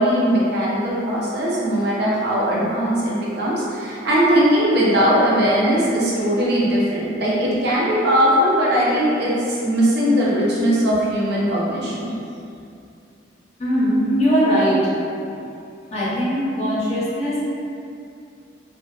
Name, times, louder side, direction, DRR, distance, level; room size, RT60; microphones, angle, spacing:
voice 1, 0.0-12.1, equal, 60° right, -6 dB, 0.5 m, -19 dB
voice 2, 13.6-14.8 15.3-15.4 15.9-17.4, equal, 35° left, -9 dB, 0.7 m, -20 dB
2.4 x 2.4 x 2.3 m, 2.5 s
head